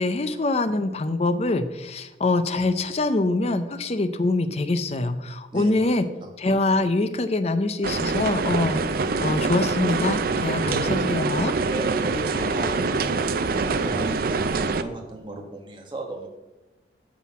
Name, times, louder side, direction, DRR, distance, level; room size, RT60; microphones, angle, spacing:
voice 1, 0.0-6.0 6.4-8.9 9.2-11.5, left 2 dB, 35° left, 10 dB, 0.5 m, -24 dB
voice 2, 5.5-5.9 6.2-6.3 10.7-10.8 11.7-16.3, right 2 dB, 25° right, 1 dB, 1.4 m, -35 dB
sound 1, 7.8-14.8, right 4 dB, 50° right, 0.5 m, -25 dB
9.8 x 3.8 x 7.3 m, 1.1 s
head